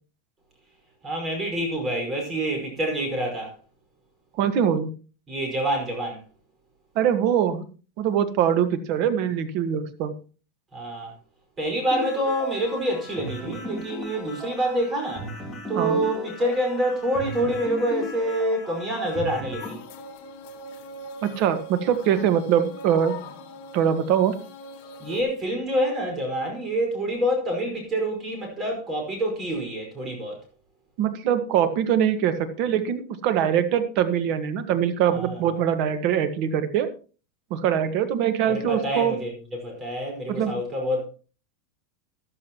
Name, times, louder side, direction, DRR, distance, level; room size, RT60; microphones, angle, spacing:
voice 1, 1.0-3.5 5.3-6.2 10.7-11.1 11.6-15.3 15.7-19.8 25.0-30.4 35.1-35.6 38.5-41.1, right 1 dB, 20° right, 5.1 m, -27 dB
voice 2, 4.4-4.9 6.9-7.6 8.0-10.1 15.7-16.0 21.2-23.2 23.7-24.3 31.0-36.9 37.5-39.1 40.3-40.5, right 9 dB, 50° right, 1.6 m, -23 dB
sound 1, 11.9-19.7, equal, 10° left, 3.3 m, -36 dB
sound 2, 19.6-25.2, left 1 dB, 50° left, 2.3 m, -41 dB
13.5 x 12.5 x 3.0 m
supercardioid pair, 155°, 0 cm